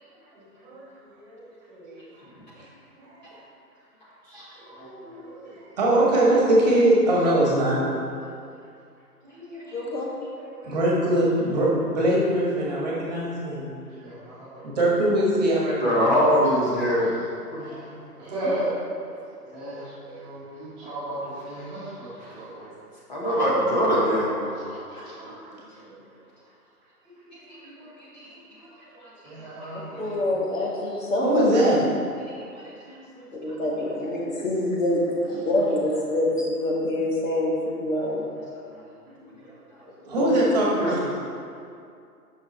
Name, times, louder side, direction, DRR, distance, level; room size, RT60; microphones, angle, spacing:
voice 1, 0.3-1.4 1.7-2.2 2.5-2.6 3.0-3.4 4.6-4.7 5.0-7.8 8.2-8.3 9.2-9.7 10.0-13.7 14.6-16.2 19.1-19.2 20.0-20.2 21.1-21.2 25.0-25.3 25.9-26.0 27.0-27.1 27.6-27.8 31.2-31.8 32.1-32.3 32.8-33.3 40.0-41.2, right 1 dB, 25° right, -5 dB, 1.5 m, -24 dB
voice 2, 9.7-10.1 30.0-31.4 33.4-38.3 40.2-40.3, left 1 dB, 50° left, -3 dB, 2.0 m, -25 dB
voice 3, 14.0-14.3 17.7-18.7 19.5-22.1 22.3-22.6 24.7-24.8 25.2-25.4 29.2-30.2, right 1 dB, 10° right, -12 dB, 1.4 m, -34 dB
voice 4, 15.8-17.1 17.5-17.6 22.2-22.3 23.1-24.5 25.0-25.1 27.3-27.7 28.0-28.3 29.0-29.1 32.3-33.0 40.8-40.9, equal, 30° left, -7 dB, 1.3 m, -24 dB
9.2 x 6.2 x 4.3 m, 2.4 s
figure-of-eight pair, 155°, 49 cm